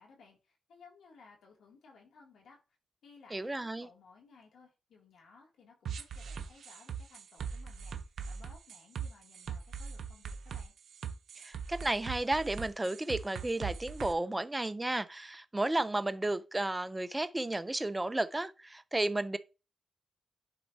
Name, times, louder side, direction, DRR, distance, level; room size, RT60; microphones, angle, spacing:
voice 1, 0.0-2.6 3.0-10.7, left 4 dB, 80° left, 2.5 m, -59 dB
voice 2, 3.3-3.9 11.4-19.4, right 2 dB, 15° right, 0.6 m, -33 dB
sound 1, 5.9-14.1, right 7 dB, 75° right, 0.8 m, -40 dB
10.0 x 4.5 x 2.8 m
cardioid pair, 75°, 0 cm